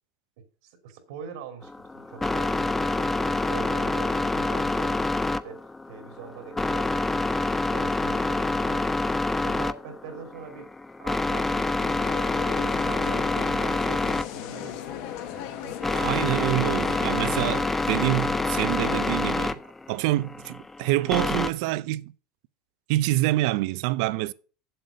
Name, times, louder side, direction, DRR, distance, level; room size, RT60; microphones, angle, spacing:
voice 1, 0.4-8.9 9.3-10.7 11.0-15.8, right 7 dB, 75° right, 2.9 m, -43 dB
sound 1, 1.6-21.5, left 2 dB, 5° left, 0.4 m, -27 dB
sound 2, 11.8-19.2, left 11 dB, 55° left, 1.1 m, -37 dB
voice 2, 15.9-19.6 19.9-22.1 22.9-24.3, right 18 dB, 60° right, 0.5 m, -26 dB
8.1 x 7.7 x 6.6 m
cardioid pair, 175°, 3 cm